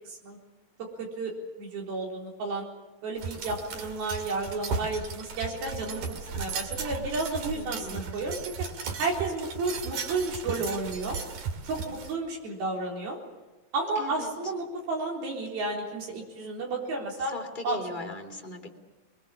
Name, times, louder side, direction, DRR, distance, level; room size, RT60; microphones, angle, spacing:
voice 1, 1.0-1.3 1.6-2.7 3.0-6.0 6.4-8.4 9.0-11.2 11.6-13.2 13.7-17.3 17.6-17.8, right 3 dB, 80° right, -2 dB, 5.8 m, -32 dB
sound 1, 3.2-12.2, right 5 dB, 60° right, 3.3 m, -36 dB
voice 2, 7.5-8.1 14.0-14.3 17.3-18.7, left 2 dB, 15° left, 1 dB, 2.2 m, -39 dB
23.5 x 22.0 x 7.2 m, 1.1 s
omnidirectional pair, 4.2 m